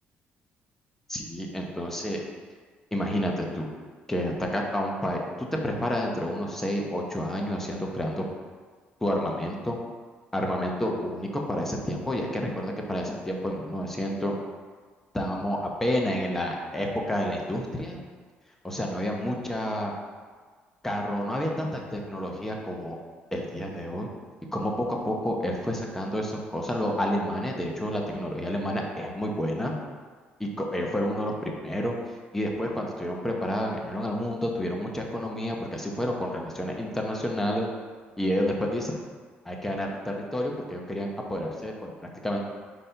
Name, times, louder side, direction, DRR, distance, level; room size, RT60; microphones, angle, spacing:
voice 1, 1.1-2.2 2.9-3.7 4.1-8.2 9.0-9.8 10.3-14.3 15.1-18.0 18.6-19.9 20.8-23.0 23.3-24.1 24.5-29.7 30.4-32.0 32.3-37.7 38.2-39.0 39.4-42.4, equal, 10° left, 0 dB, 0.9 m, -29 dB
5.2 x 4.2 x 4.5 m, 1.5 s
cardioid pair, 115°, 4 cm